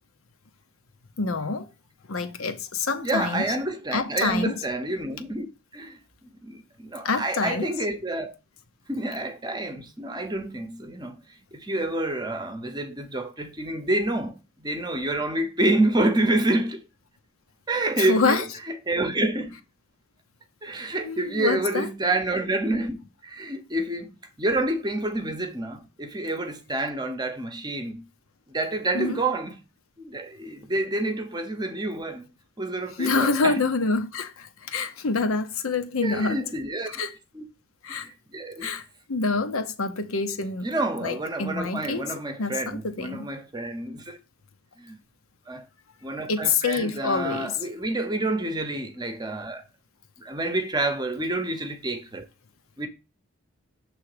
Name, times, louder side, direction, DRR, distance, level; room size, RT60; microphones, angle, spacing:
voice 1, 1.2-1.7 2.1-3.5 3.9-4.6 7.0-7.7 18.0-18.4 21.0-21.9 28.9-29.2 33.0-36.4 36.9-37.1 37.8-38.1 38.6-40.7 41.0-42.1 42.4-43.3 46.3-47.5, left 4 dB, 80° left, 0.8 m, -26 dB
voice 2, 3.0-5.5 5.7-8.3 8.9-11.2 11.5-16.8 17.7-19.6 20.6-24.1 24.4-28.1 28.5-29.6 30.0-32.3 32.6-33.6 36.0-37.1 37.3-37.4 37.9-38.7 40.6-44.2 44.8-45.0 45.5-45.6 46.0-49.6 50.2-52.3 52.8-52.9, right 2 dB, 20° right, 0.8 m, -28 dB
6.8 x 3.3 x 4.9 m
head